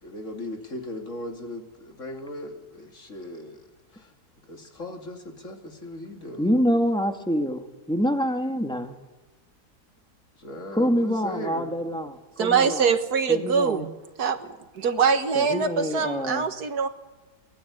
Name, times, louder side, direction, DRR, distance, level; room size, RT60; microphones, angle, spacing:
voice 1, 0.0-3.7 3.9-4.1 4.5-6.5 10.4-11.7, left 1 dB, 50° left, 4 dB, 2.8 m, -38 dB
voice 2, 6.4-9.0 10.7-12.9 13.3-13.9 15.4-16.5, equal, 5° left, 5 dB, 2.1 m, -26 dB
voice 3, 12.4-13.9 14.2-14.5 14.8-16.9, right 6 dB, 70° right, 9 dB, 2.0 m, -23 dB
24.0 x 19.0 x 8.3 m, 1.1 s
omnidirectional pair, 1.7 m